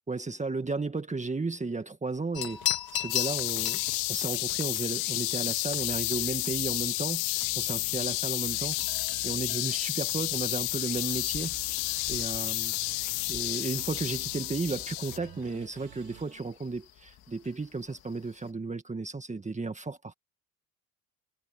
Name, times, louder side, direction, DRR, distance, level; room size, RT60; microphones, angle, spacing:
voice 1, 0.1-3.8 4.1-11.7 12.1-12.7 13.3-20.1, right 3 dB, 15° right, 1.8 m, -34 dB
sound 1, 2.3-18.5, left 11 dB, 60° left, 3.6 m, -41 dB
sound 2, 3.1-15.2, left 23 dB, 90° left, 1.0 m, -31 dB
sound 3, 5.8-6.9 7.4-9.8 10.0-16.4, right 15 dB, 70° right, 4.3 m, -50 dB
supercardioid pair, 80°, 41 cm